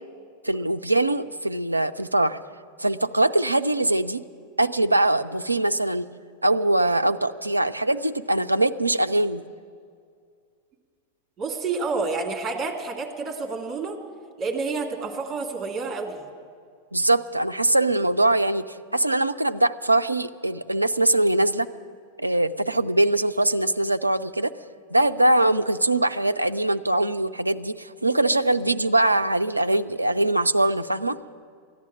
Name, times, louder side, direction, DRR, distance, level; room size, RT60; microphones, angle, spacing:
voice 1, 0.4-2.4 2.8-4.2 4.6-6.1 6.4-9.4 16.9-21.7 22.2-24.5 24.9-31.2, right 1 dB, 85° right, 12 dB, 0.4 m, -22 dB
voice 2, 11.4-14.0 14.4-16.2, right 4 dB, 25° right, 2 dB, 2.5 m, -29 dB
14.5 x 11.0 x 8.9 m, 2.2 s
figure-of-eight pair, 90°, 0 cm